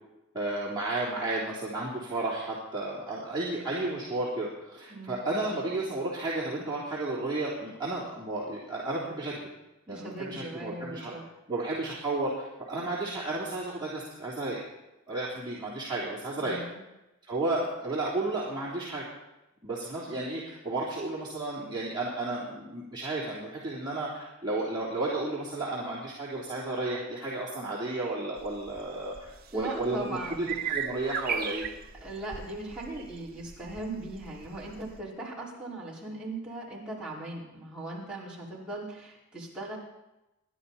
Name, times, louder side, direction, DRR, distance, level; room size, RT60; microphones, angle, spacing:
voice 1, 0.3-9.4 9.9-11.1 11.5-14.6 15.1-16.6 17.2-19.0 19.6-31.7, right 2 dB, 20° right, -8 dB, 3.5 m, -33 dB
voice 2, 4.9-5.2 9.9-11.2 16.4-16.8 29.5-30.5 32.0-39.8, right 2 dB, 5° right, -8 dB, 5.2 m, -39 dB
sound 1, 28.4-35.0, right 7 dB, 45° right, 1.1 m, -38 dB
29.0 x 11.5 x 4.3 m, 0.96 s
head